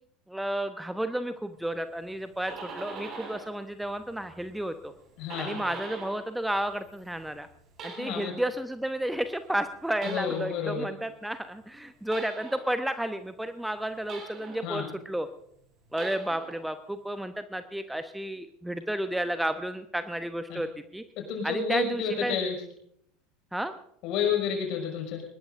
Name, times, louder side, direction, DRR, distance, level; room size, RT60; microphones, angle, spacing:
voice 1, 0.3-4.9 5.4-7.5 7.8-15.3 15.9-21.0 21.4-22.4 23.5-23.7, right 1 dB, 5° right, 10 dB, 0.8 m, -32 dB
sound 1, 2.1-3.6 3.9-6.3 6.6-8.5 9.9-10.7 12.1-12.8 14.1-14.8 15.9-16.6, right 4 dB, 40° right, 5.9 m, -43 dB
voice 2, 5.2-5.6 8.0-8.3 10.0-10.9 14.6-14.8 20.5-20.6 21.3-22.5 24.0-25.2, left 6 dB, 50° left, 3 dB, 5.6 m, -30 dB
23.0 x 20.5 x 2.6 m, 0.70 s
figure-of-eight pair, 75°, 0 cm